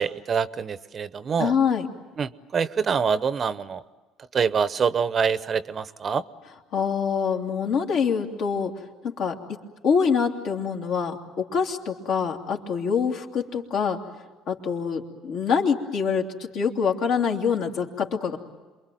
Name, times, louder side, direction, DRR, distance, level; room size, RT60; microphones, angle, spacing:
voice 1, 0.0-1.5 2.2-3.8 4.3-6.2, right 6 dB, 40° right, 15 dB, 0.8 m, -25 dB
voice 2, 1.4-1.9 6.7-8.7 9.0-9.4 9.8-14.0 14.5-16.3 16.5-18.4, left 6 dB, 70° left, 1 dB, 2.8 m, -25 dB
28.0 x 22.5 x 9.2 m, 1.3 s
supercardioid pair, 90°, 0 cm